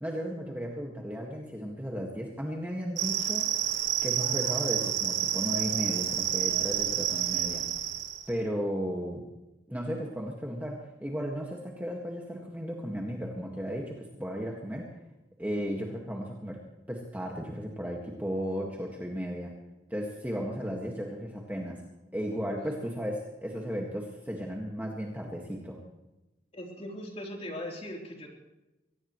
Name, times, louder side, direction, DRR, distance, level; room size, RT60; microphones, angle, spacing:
voice 1, 0.0-3.5 4.0-7.7 8.3-9.2 9.7-14.9 15.4-16.6 16.9-19.5 19.9-21.8 22.1-25.8, equal, 10° right, -1 dB, 1.8 m, -35 dB
sound 1, 3.0-8.3, right 10 dB, 80° right, 1.6 m, -29 dB
voice 2, 26.5-28.3, left 1 dB, 35° left, -1 dB, 3.7 m, -39 dB
23.0 x 18.0 x 3.2 m, 1.0 s
head